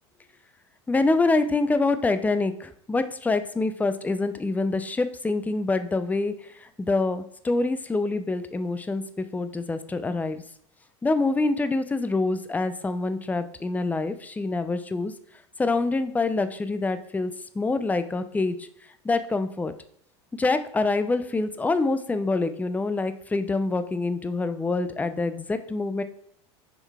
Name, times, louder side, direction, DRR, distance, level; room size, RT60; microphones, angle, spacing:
voice 1, 0.9-6.3 6.8-9.0 9.3-10.4 11.0-15.1 15.6-18.6 19.0-19.7 20.4-26.0, left 3 dB, 10° left, 11 dB, 0.5 m, -26 dB
6.8 x 4.5 x 3.5 m, 0.65 s
hypercardioid pair, 95°, 15 cm